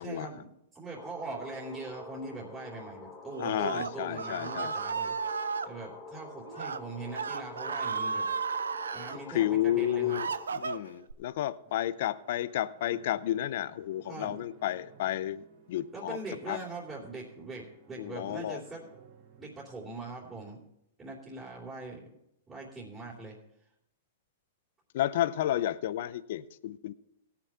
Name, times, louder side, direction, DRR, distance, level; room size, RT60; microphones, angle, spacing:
voice 1, 0.0-8.2 8.9-10.2 14.1-14.4 15.9-18.9 19.4-20.6 21.0-22.0 22.5-23.4, right 3 dB, 15° right, -6 dB, 3.3 m, -42 dB
sound 1, 1.0-10.4, left 3 dB, 20° left, 1.5 m, -47 dB
Screaming, 3.3-5.7 6.5-6.8 7.1-9.2 9.7-11.1, right 5 dB, 90° right, 0.6 m, -34 dB
voice 2, 3.4-4.7 9.1-10.3 10.5-16.2 16.5-16.6 18.0-18.6 24.9-26.9, left 13 dB, 60° left, 15 dB, 0.5 m, -31 dB
sound 2, 11.6-20.6, right 7 dB, 45° right, 2.6 m, -58 dB
17.5 x 6.0 x 5.5 m, 0.79 s
hypercardioid pair, 120°, 0 cm